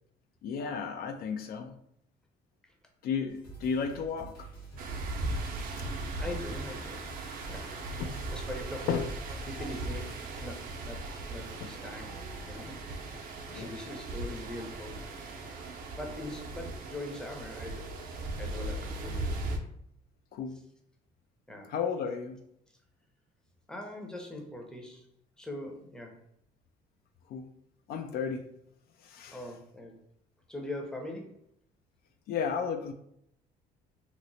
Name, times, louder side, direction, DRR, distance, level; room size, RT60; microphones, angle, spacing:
voice 1, 0.4-1.8 3.0-4.5 7.2-7.6 8.0-8.3 8.9-9.1 11.6-11.7 13.5-13.7 20.3-20.6 21.7-22.4 27.3-27.5 27.9-28.5 29.0-29.4 32.3-32.9, left 6 dB, 65° left, 6 dB, 0.4 m, -33 dB
sound 1, 3.3-19.5, right 1 dB, 85° left, 1.4 m, -53 dB
sound 2, 4.8-19.6, right 2 dB, 60° right, 0.6 m, -38 dB
voice 2, 6.2-7.8 8.3-8.9 9.4-12.1 12.5-13.0 13.3-15.7 16.0-17.9 18.4-19.3 21.5-21.7 23.7-25.1 25.4-26.2 29.3-30.0 30.5-31.4, left 1 dB, 5° left, 1 dB, 0.6 m, -42 dB
2.9 x 2.0 x 3.9 m, 0.73 s
cardioid pair, 110°, 17 cm